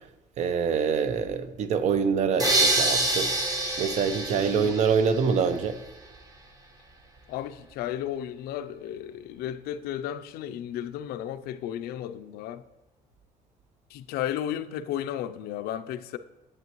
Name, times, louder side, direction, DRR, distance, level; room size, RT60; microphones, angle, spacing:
voice 1, 0.4-3.3 3.8-5.8, right 6 dB, 45° right, 0.6 m, -25 dB
sound 1, 2.4-5.4, right 2 dB, 25° right, 1.0 m, -26 dB
voice 2, 7.3-12.6 13.9-16.2, left 11 dB, 75° left, 0.5 m, -34 dB
11.0 x 8.1 x 3.0 m
cardioid pair, 170°, 16 cm